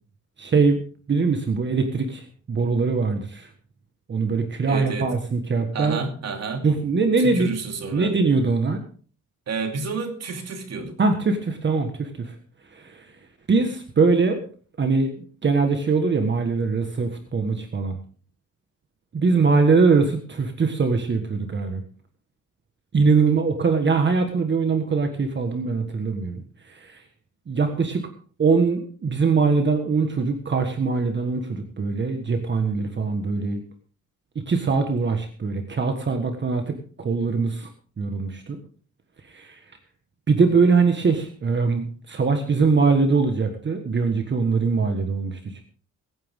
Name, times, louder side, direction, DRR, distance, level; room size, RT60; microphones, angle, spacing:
voice 1, 0.4-0.8 1.1-3.5 4.1-6.0 6.6-7.5 7.9-8.8 11.0-12.3 12.7-13.0 13.5-14.4 14.8-18.0 19.1-21.8 22.9-26.4 26.7-27.0 27.5-28.0 28.4-33.6 34.5-37.7 38.0-38.6 39.3-39.6 40.3-45.6, right 4 dB, 35° right, 5 dB, 1.5 m, -22 dB
voice 2, 4.7-5.1 5.7-6.7 7.2-8.2 9.5-11.0, right 4 dB, 55° right, 4 dB, 2.8 m, -30 dB
22.5 x 9.4 x 3.7 m, 0.41 s
wide cardioid pair, 165°, 31 cm